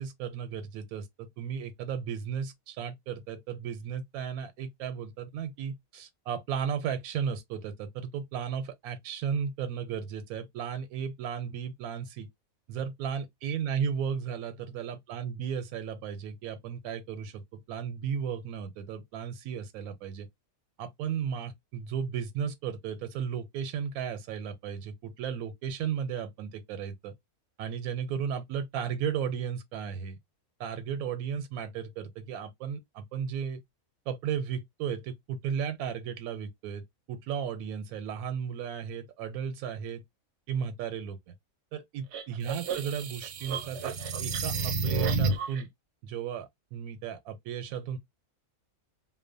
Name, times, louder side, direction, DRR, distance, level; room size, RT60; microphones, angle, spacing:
voice 1, 0.0-12.3 12.7-20.3 20.8-27.1 27.6-30.2 30.6-33.6 34.1-40.0 40.5-41.3 41.7-45.7 46.0-48.0, right 7 dB, 90° right, 1.1 m, -35 dB
sound 1, 42.1-45.6, right 4 dB, 65° right, 0.7 m, -30 dB
2.8 x 2.0 x 2.5 m
omnidirectional pair, 1.5 m